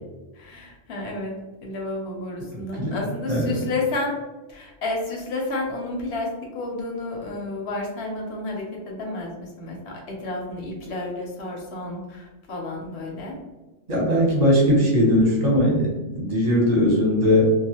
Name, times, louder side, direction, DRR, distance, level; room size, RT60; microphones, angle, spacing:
voice 1, 0.4-1.3 1.6-4.2 4.5-13.4 14.8-14.9, left 2 dB, 65° left, -1 dB, 0.9 m, -31 dB
voice 2, 2.8-3.6 13.9-17.6, equal, 35° right, -3 dB, 0.9 m, -20 dB
2.3 x 2.3 x 2.8 m, 1.1 s
omnidirectional pair, 1.3 m